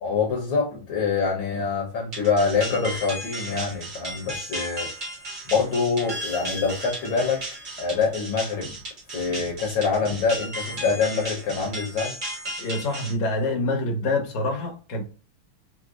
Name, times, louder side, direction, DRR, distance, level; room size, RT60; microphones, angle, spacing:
voice 1, 0.0-4.9 5.5-7.4 7.8-8.7 9.1-12.1, left 5 dB, 65° left, 1.7 m, -25 dB
sound 1, 2.1-13.1, right 1 dB, 65° right, 0.4 m, -35 dB
voice 2, 12.6-15.0, left 2 dB, 85° left, 2.0 m, -26 dB
5.0 x 2.0 x 2.4 m
omnidirectional pair, 2.4 m